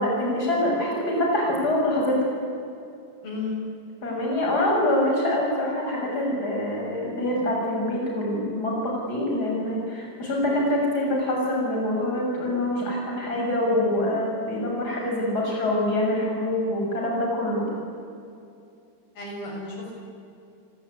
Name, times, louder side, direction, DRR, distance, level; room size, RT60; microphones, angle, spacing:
voice 1, 0.0-2.3 4.0-17.7, left 1 dB, 25° left, -1 dB, 7.1 m, -25 dB
voice 2, 3.2-3.6 19.2-19.9, left 3 dB, 65° left, -1 dB, 8.3 m, -33 dB
29.5 x 19.5 x 9.8 m, 2.6 s
omnidirectional pair, 4.5 m